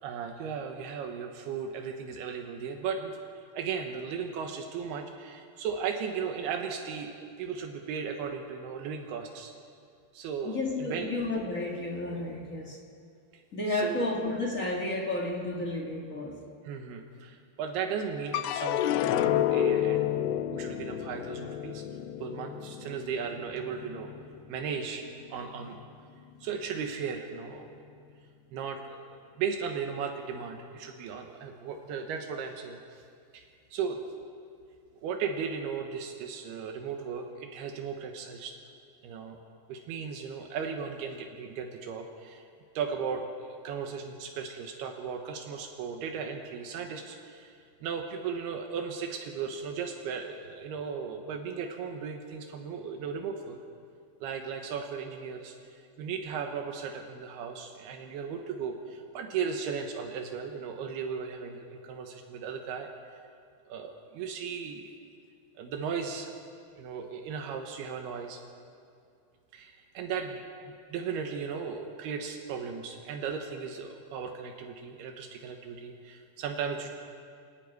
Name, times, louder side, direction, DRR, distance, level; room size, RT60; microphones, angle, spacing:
voice 1, 0.0-3.2 3.5-9.5 10.1-11.1 13.3-13.4 13.7-14.1 16.6-20.1 20.5-21.8 22.2-24.1 24.5-25.0 25.3-25.8 26.4-27.8 28.5-33.0 33.3-34.0 35.0-38.5 39.0-39.4 39.7-42.5 42.7-47.5 47.8-53.6 54.2-62.9 63.7-64.9 65.6-66.3 66.8-68.4 69.5-70.4 70.9-76.9, right 6 dB, 80° right, 3 dB, 3.2 m, -36 dB
voice 2, 10.4-12.8 13.5-16.4, left 2 dB, 35° left, -1 dB, 1.3 m, -32 dB
sound 1, 18.3-24.8 25.2-25.9, left 12 dB, 90° left, 2.7 m, -30 dB
27.5 x 11.0 x 9.4 m, 2.4 s
omnidirectional pair, 4.6 m